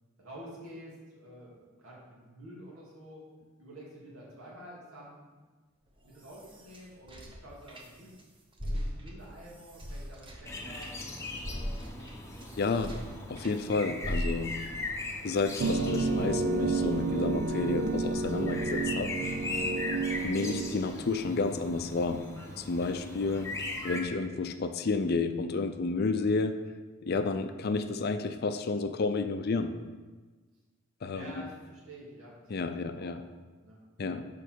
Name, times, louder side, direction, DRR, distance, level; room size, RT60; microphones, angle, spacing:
voice 1, 0.2-3.3 3.6-5.3 6.0-8.1 8.6-11.8 12.3-12.8 27.0-27.2 31.1-33.2 33.6-33.8, right 1 dB, 80° right, -5 dB, 2.4 m, -49 dB
sound 1, 5.9-8.2 8.5-13.6 14.0-14.7, equal, 25° right, 0.8 m, -39 dB
sound 2, 10.5-24.0, left 2 dB, 15° left, 0.8 m, -39 dB
voice 2, 12.6-13.0 13.3-14.6 15.2-19.1 20.2-22.2 22.6-23.6 23.8-26.6 27.0-29.7 31.0-31.3 32.5-33.2 34.0-34.3, left 3 dB, 50° left, 9 dB, 0.4 m, -31 dB
sound 3, 15.6-20.9, right 3 dB, 55° right, 0.4 m, -30 dB
6.9 x 5.3 x 4.6 m, 1.3 s
head